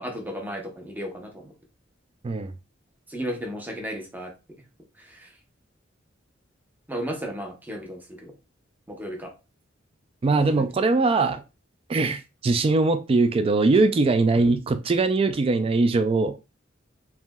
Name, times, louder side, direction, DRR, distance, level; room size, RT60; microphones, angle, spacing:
voice 1, 0.0-1.5 3.1-4.3 5.1-5.3 6.9-8.3 8.9-9.3 10.4-10.7 12.0-12.1, equal, 10° right, 0.7 m, -34 dB
voice 2, 10.2-11.4 11.9-16.4, right 3 dB, 30° right, 0.3 m, -21 dB
3.2 x 2.6 x 2.2 m
head